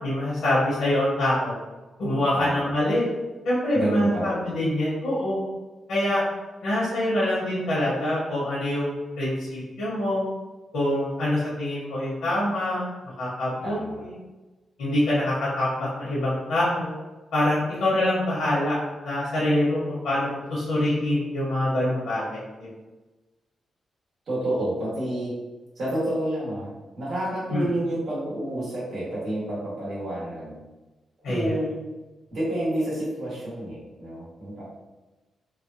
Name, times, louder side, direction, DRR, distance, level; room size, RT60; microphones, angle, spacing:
voice 1, 0.0-1.6 2.0-3.0 3.4-5.4 5.9-6.2 6.6-10.3 10.7-12.8 13.2-14.2 14.8-16.9 17.3-18.8 19.0-22.7 27.5-27.7 31.2-31.5, left 1 dB, 80° left, -8 dB, 1.0 m, -25 dB
voice 2, 2.3-2.7 3.7-4.5 13.6-14.0 24.3-25.4 25.7-26.7 27.0-30.6 31.3-31.8 32.3-34.6, right 1 dB, 50° right, -9 dB, 1.5 m, -29 dB
3.2 x 2.2 x 2.7 m, 1.2 s
wide cardioid pair, 170°, 0 cm